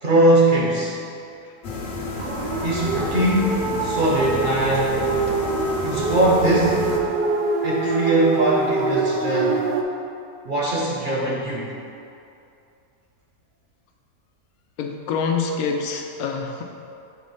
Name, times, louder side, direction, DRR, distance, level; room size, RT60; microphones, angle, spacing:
voice 1, 0.0-1.0 2.6-5.0 5.8-7.0 7.6-9.6 10.5-11.7, right 1 dB, 50° right, -4 dB, 0.7 m, -21 dB
sound 1, 1.6-7.0, left 2 dB, 45° left, 0.7 m, -30 dB
sound 2, 2.2-9.8, right 4 dB, 85° right, 0.4 m, -24 dB
voice 2, 14.8-16.6, left 5 dB, 90° left, 3 dB, 1.1 m, -26 dB
6.6 x 3.1 x 5.4 m, 2.6 s
omnidirectional pair, 1.5 m